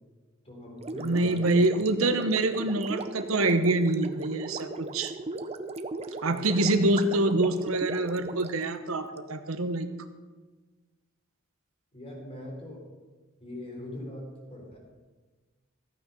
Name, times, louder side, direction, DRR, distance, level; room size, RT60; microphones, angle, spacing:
voice 1, 0.4-1.6 6.5-6.6 11.9-12.8 13.4-14.8, left 1 dB, 30° left, 0 dB, 3.7 m, -41 dB
Gurgling, 0.8-9.2, right 2 dB, 30° right, 0.6 m, -38 dB
voice 2, 1.0-5.1 6.2-9.9, right 2 dB, 90° right, 9 dB, 1.0 m, -25 dB
14.5 x 9.0 x 5.5 m, 1.3 s
head